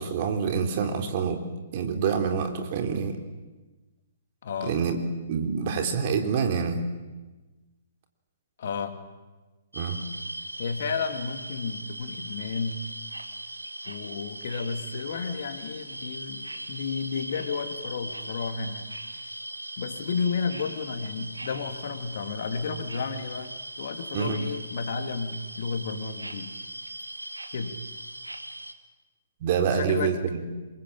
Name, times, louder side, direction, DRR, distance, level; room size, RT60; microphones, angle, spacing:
voice 1, 0.0-1.4 1.7-3.2 4.6-5.0 5.3-6.9 9.7-10.0 24.1-24.4 29.4-30.4, right 6 dB, 40° right, 5 dB, 3.7 m, -26 dB
voice 2, 4.4-4.8 8.6-9.0 10.6-12.9 13.8-18.9 19.8-26.6 27.5-27.8 29.7-30.2, left 5 dB, 50° left, 7 dB, 2.9 m, -32 dB
sound 1, 9.7-28.7, right 1 dB, 85° right, 2.3 m, -39 dB
27.5 x 23.0 x 8.8 m, 1.2 s
figure-of-eight pair, 120°, 0 cm